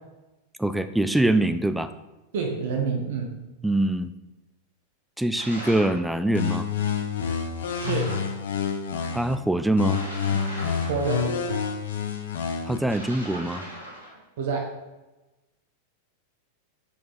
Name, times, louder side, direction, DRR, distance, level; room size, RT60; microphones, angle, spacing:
voice 1, 0.6-1.9 3.6-4.1 5.2-6.7 9.1-10.0 10.3-10.4 12.6-13.6, right 1 dB, 5° right, 11 dB, 0.4 m, -24 dB
voice 2, 2.3-3.3 7.7-8.1 10.9-11.3 14.4-14.7, right 5 dB, 55° right, 1 dB, 1.2 m, -27 dB
sound 1, 5.3-6.0 7.7-8.3 9.8-11.5 12.8-14.2, equal, 80° right, 2.0 m, -39 dB
sound 2, 6.3-9.4 9.8-12.8, left 6 dB, 60° left, 0.8 m, -28 dB
6.7 x 5.3 x 4.0 m, 1.1 s
figure-of-eight pair, 90°, 0 cm